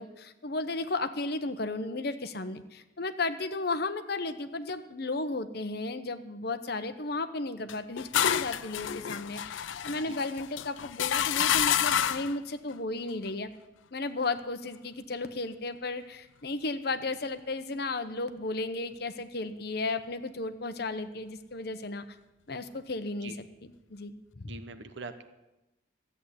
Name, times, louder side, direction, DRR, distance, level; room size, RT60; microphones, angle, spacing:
voice 1, 0.0-13.5 13.9-22.1 22.5-24.5, left 3 dB, 55° left, 10 dB, 0.9 m, -34 dB
sound 1, 7.7-12.4, left 9 dB, 80° left, 0.5 m, -29 dB
voice 2, 24.5-25.2, right 3 dB, 70° right, 10 dB, 0.8 m, -42 dB
13.5 x 8.3 x 9.8 m, 0.99 s
head